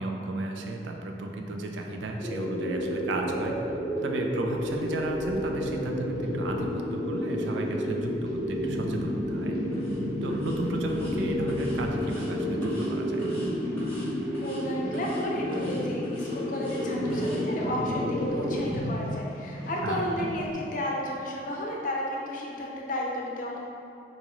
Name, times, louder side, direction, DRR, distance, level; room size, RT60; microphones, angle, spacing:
voice 1, 0.0-3.6 4.0-9.6 10.2-13.3 19.8-20.3, right 2 dB, 90° right, 3 dB, 0.4 m, -34 dB
sound 1, 1.3-20.5, equal, 60° right, 0.8 m, -39 dB
sound 2, 2.2-18.6, equal, 20° right, 0.7 m, -31 dB
sound 3, 9.7-10.0 10.3-10.6 10.9-11.1 11.5-12.3 12.6-12.9 13.2-13.5 13.8-14.1 14.3-14.6 14.9-15.2 15.5-16.8 17.1-17.4, equal, 10° left, 0.9 m, -48 dB
voice 2, 14.4-23.6, left 1 dB, 45° left, -2 dB, 0.5 m, -33 dB
3.9 x 2.4 x 2.9 m, 2.7 s
head